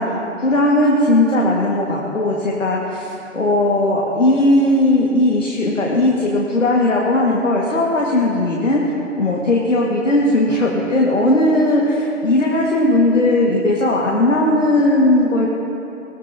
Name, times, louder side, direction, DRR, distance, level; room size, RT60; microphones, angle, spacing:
voice 1, 0.0-15.5, left 1 dB, 80° left, -3 dB, 2.1 m, -17 dB
21.0 x 16.5 x 2.9 m, 2.9 s
figure-of-eight pair, 115°, 37 cm